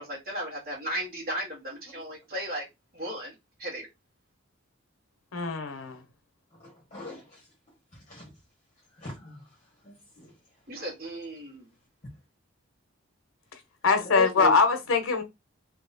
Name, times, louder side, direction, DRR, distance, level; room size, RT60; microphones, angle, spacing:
voice 1, 0.0-2.6 2.9-3.3 3.6-3.9 10.7-11.6, equal, 45° right, 1.7 m, -35 dB
voice 2, 5.3-6.0 13.8-15.2, left 4 dB, 90° left, 1.0 m, -23 dB
voice 3, 6.6-7.2 8.1-8.2 9.0-9.3 9.8-10.3 14.0-14.5, left 2 dB, 35° left, 1.4 m, -36 dB
3.1 x 2.9 x 4.1 m
head